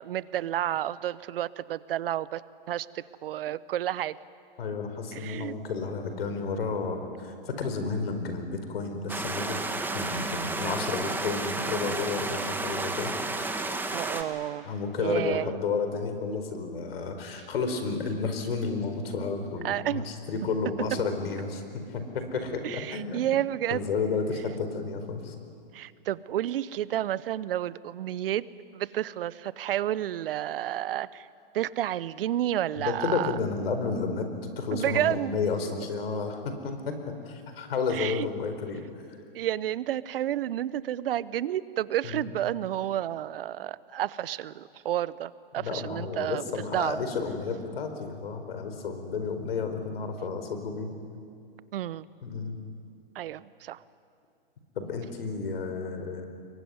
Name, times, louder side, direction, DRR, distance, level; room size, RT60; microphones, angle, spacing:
voice 1, 0.0-2.4 2.7-4.2 5.1-5.5 13.9-14.7 15.0-15.5 19.6-20.1 22.6-23.9 25.7-28.5 28.7-31.3 31.5-33.4 34.7-35.4 37.9-38.3 39.3-46.4 46.7-47.0 51.7-52.1 53.1-53.8, right 12 dB, 70° right, 18 dB, 0.9 m, -30 dB
voice 2, 4.6-9.6 9.9-13.1 14.6-21.6 21.9-23.3 23.7-25.3 32.8-34.3 34.6-38.9 42.0-42.3 45.6-51.0 52.2-52.6 54.8-56.3, left 4 dB, 80° left, 7 dB, 4.7 m, -31 dB
sound 1, 9.1-14.2, right 2 dB, 5° right, 1.9 m, -32 dB
26.0 x 22.5 x 9.7 m, 2.4 s
hypercardioid pair, 120°, 29 cm